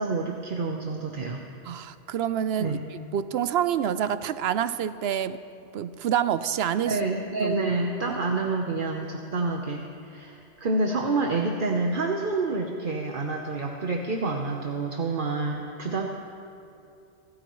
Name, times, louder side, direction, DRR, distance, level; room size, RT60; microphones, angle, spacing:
voice 1, 0.0-1.4 2.6-2.9 6.8-16.1, right 3 dB, 55° right, 1 dB, 1.1 m, -28 dB
voice 2, 1.7-5.4 5.7-7.0 7.4-7.6 8.1-8.2, right 9 dB, 75° right, 13 dB, 0.8 m, -27 dB
28.0 x 13.5 x 3.1 m, 2.8 s
omnidirectional pair, 1.1 m